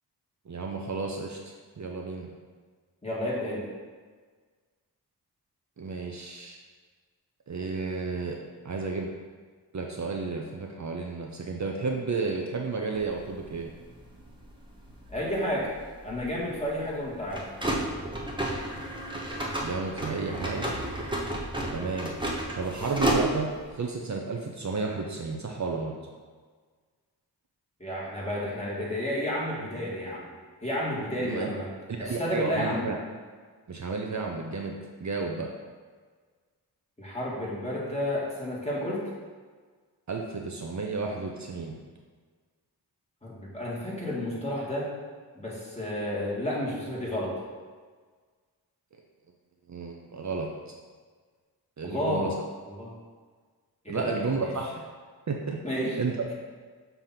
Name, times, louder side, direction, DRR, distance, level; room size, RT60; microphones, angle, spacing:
voice 1, 0.5-1.4 1.8-2.3 5.8-6.6 7.5-8.4 8.6-9.1 9.7-13.7 19.6-20.8 21.7-22.1 22.6-25.9 31.2-31.5 32.0-33.0 33.7-35.5 40.1-41.8 49.7-50.5 51.8-52.3 53.9-54.9 55.3-56.2, right 4 dB, 45° right, 0 dB, 0.7 m, -32 dB
voice 2, 3.0-3.6 15.1-15.7 16.0-17.5 27.8-30.3 30.6-31.7 32.0-32.8 37.0-39.0 43.2-44.9 45.3-47.4 51.8-52.3 52.7-52.9 53.8-54.1 54.4-54.5 55.6-56.0, left 1 dB, 15° left, -6 dB, 2.0 m, -31 dB
sound 1, 12.9-23.7, right 1 dB, 10° right, 1.1 m, -33 dB
6.8 x 3.0 x 5.7 m, 1.5 s
wide cardioid pair, 85°, 39 cm